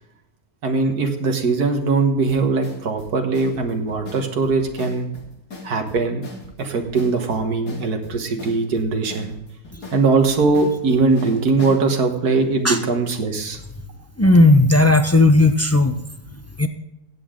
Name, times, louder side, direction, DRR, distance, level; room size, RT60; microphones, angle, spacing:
voice 1, 0.6-5.1 5.6-6.3 6.6-9.3 9.9-13.6, right 4 dB, 75° right, 5 dB, 1.9 m, -20 dB
sound 1, 2.3-11.9, left 3 dB, 80° left, 3.0 m, -39 dB
voice 2, 14.2-16.0 16.6-16.7, left 2 dB, 20° left, 8 dB, 0.4 m, -14 dB
15.5 x 8.4 x 3.7 m, 0.85 s
omnidirectional pair, 1.7 m